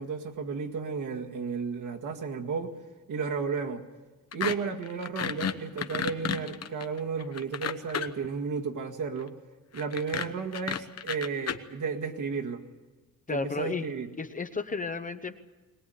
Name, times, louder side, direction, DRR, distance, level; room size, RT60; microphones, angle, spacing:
voice 1, 0.0-2.8 3.1-3.8 4.3-9.3 9.7-12.6 13.3-14.1, right 5 dB, 65° right, 5 dB, 2.0 m, -33 dB
sound 1, 4.3-4.6 4.8-8.3 9.7-11.6, left 8 dB, 50° left, 1.0 m, -32 dB
voice 2, 13.3-13.9 14.2-15.4, left 4 dB, 25° left, 9 dB, 0.8 m, -33 dB
22.5 x 19.0 x 9.3 m, 1.2 s
wide cardioid pair, 155°, 34 cm